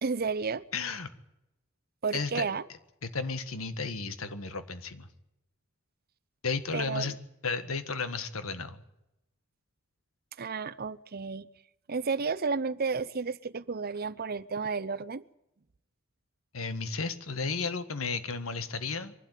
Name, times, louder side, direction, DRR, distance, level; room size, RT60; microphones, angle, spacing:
voice 1, 0.0-0.6 2.0-2.6 6.7-7.2 10.4-11.5 11.9-15.2, right 4 dB, 50° right, 15 dB, 0.7 m, -32 dB
voice 2, 0.7-1.1 2.1-2.4 3.0-5.1 6.4-7.1 7.4-8.8 16.5-19.1, left 4 dB, 85° left, 11 dB, 1.6 m, -33 dB
24.0 x 12.0 x 9.2 m, 0.90 s
head